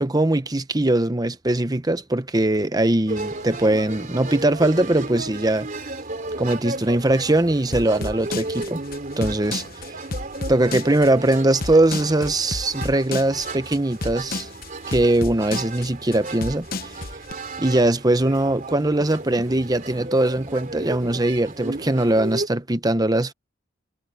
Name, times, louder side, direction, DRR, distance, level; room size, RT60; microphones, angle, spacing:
voice 1, 0.0-5.7 6.4-8.8 9.2-9.6 10.5-14.5 14.9-16.9 17.6-23.3, right 1 dB, 20° right, 0.9 m, -21 dB
sound 1, 3.1-22.5, right 2 dB, 45° right, 3.0 m, -34 dB
sound 2, 7.7-17.3, left 3 dB, 45° left, 1.0 m, -31 dB
head